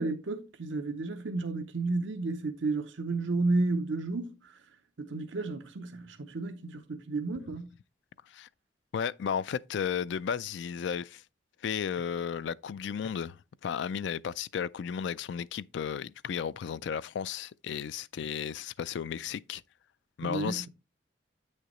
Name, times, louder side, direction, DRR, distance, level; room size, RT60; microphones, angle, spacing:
voice 1, 0.0-4.4 5.0-7.7 20.2-20.7, right 3 dB, 75° right, 0.7 m, -32 dB
voice 2, 8.9-11.2 11.6-13.4 13.6-19.6 20.2-20.7, left 7 dB, 70° left, 0.3 m, -34 dB
8.4 x 6.5 x 3.0 m
head